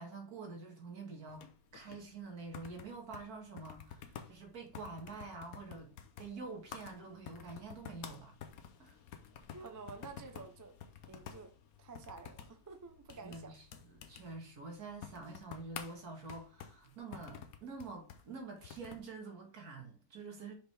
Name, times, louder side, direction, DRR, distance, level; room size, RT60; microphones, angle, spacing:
voice 1, 0.0-5.9 6.2-8.4 8.8-9.0 13.2-20.5, right 3 dB, 85° right, 2.2 m, -47 dB
sound 1, 1.3-19.1, left 8 dB, 75° left, 1.2 m, -52 dB
voice 2, 9.5-10.8 11.1-11.5 11.8-13.5, right 4 dB, 25° right, 0.4 m, -50 dB
6.0 x 5.1 x 3.3 m
omnidirectional pair, 1.6 m